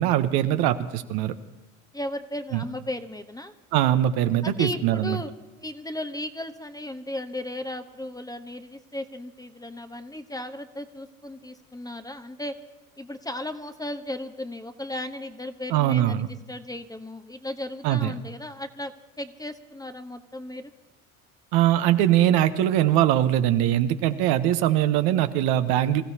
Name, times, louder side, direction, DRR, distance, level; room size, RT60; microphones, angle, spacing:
voice 1, 0.0-1.3 2.5-2.6 3.7-5.2 15.7-16.3 17.8-18.1 21.5-26.0, right 12 dB, 65° right, 9 dB, 1.1 m, -22 dB
voice 2, 1.9-3.5 4.4-5.3 5.6-12.5 13.0-20.7, left 1 dB, 10° left, 9 dB, 1.0 m, -35 dB
26.5 x 15.5 x 2.8 m, 1.0 s
hypercardioid pair, 70°, 40 cm